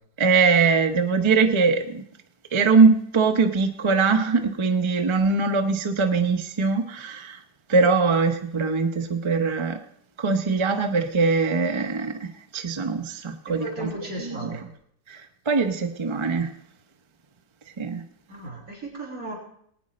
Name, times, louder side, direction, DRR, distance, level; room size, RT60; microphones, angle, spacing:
voice 1, 0.2-2.0 2.5-7.4 7.7-9.8 10.2-13.9 14.2-14.7 15.1-16.5 17.8-18.0, right 4 dB, 35° right, 7 dB, 0.4 m, -22 dB
voice 2, 13.6-14.7 18.3-19.4, right 1 dB, 55° right, -3 dB, 3.4 m, -35 dB
19.5 x 9.5 x 4.2 m, 0.66 s
omnidirectional pair, 1.8 m